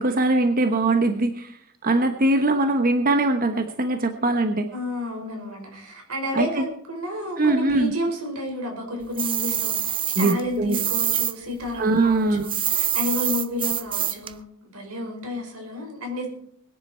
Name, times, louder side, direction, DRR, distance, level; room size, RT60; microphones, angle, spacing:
voice 1, 0.0-4.7 6.3-6.7 7.4-7.9 10.1-10.8 11.8-12.5, right 2 dB, 40° right, 6 dB, 1.1 m, -22 dB
voice 2, 4.7-14.4 14.7-16.3, left 1 dB, 90° right, 2 dB, 5.1 m, -31 dB
sound 1, 9.2-11.3 11.6-14.3, right 10 dB, 25° right, 0.5 m, -25 dB
21.0 x 10.5 x 4.5 m, 0.66 s
head